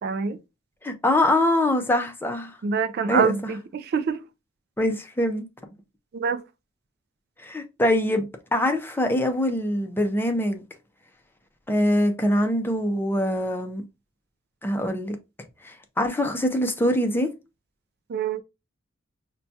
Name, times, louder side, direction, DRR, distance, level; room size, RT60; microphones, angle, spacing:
voice 1, 0.0-0.4 2.6-4.2 6.1-6.4 18.1-18.4, right 6 dB, 50° right, 0.3 m, -25 dB
voice 2, 0.8-2.5 3.1-3.3 4.8-5.4 7.4-8.3 8.5-10.6 11.7-13.8 14.6-15.2 15.6-17.3, left 1 dB, 10° left, 0.5 m, -23 dB
5.5 x 2.2 x 2.7 m
head